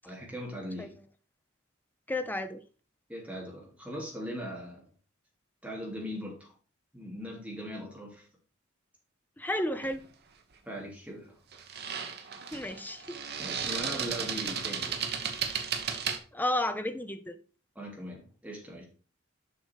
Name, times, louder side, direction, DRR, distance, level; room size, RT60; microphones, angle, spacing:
voice 1, 0.0-1.0 3.1-4.9 5.6-6.5 6.9-8.2 10.6-11.3 13.4-15.0 17.7-18.8, equal, 5° right, 2.9 m, -40 dB
voice 2, 2.1-2.6 9.4-10.1 12.5-13.2 13.7-13.8 16.3-17.4, left 1 dB, 10° left, 0.7 m, -32 dB
sound 1, 9.8-10.1 11.5-16.2, right 7 dB, 55° right, 1.3 m, -34 dB
7.1 x 6.3 x 4.6 m
head